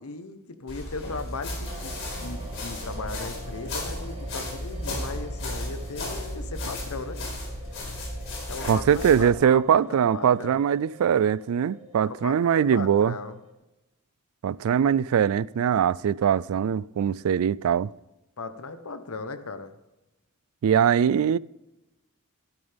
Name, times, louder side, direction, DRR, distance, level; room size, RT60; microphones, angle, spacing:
voice 1, 0.0-1.9 2.2-7.2 8.5-10.6 12.0-13.4 18.4-19.7, left 3 dB, 80° left, 1.0 m, -37 dB
sound 1, 0.7-9.3, left 1 dB, 65° left, 4.6 m, -34 dB
sound 2, 1.6-13.5, right 1 dB, 30° right, 2.1 m, -46 dB
voice 2, 8.6-13.1 14.4-17.9 20.6-21.4, right 8 dB, 75° right, 0.3 m, -22 dB
12.5 x 12.5 x 3.5 m
head